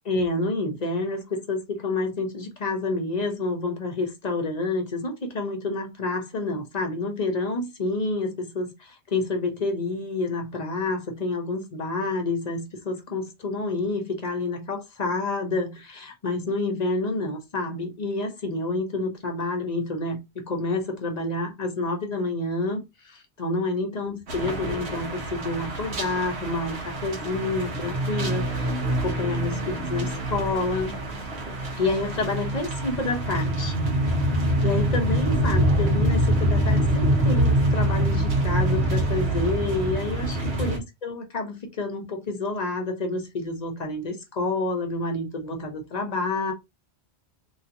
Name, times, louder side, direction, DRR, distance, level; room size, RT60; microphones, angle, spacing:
voice 1, 0.0-31.0 31.7-33.8 34.2-46.5, left 2 dB, 45° left, 0.8 m, -29 dB
sound 1, 24.3-40.8, right 1 dB, 85° right, 1.3 m, -25 dB
3.1 x 2.9 x 2.5 m
omnidirectional pair, 1.1 m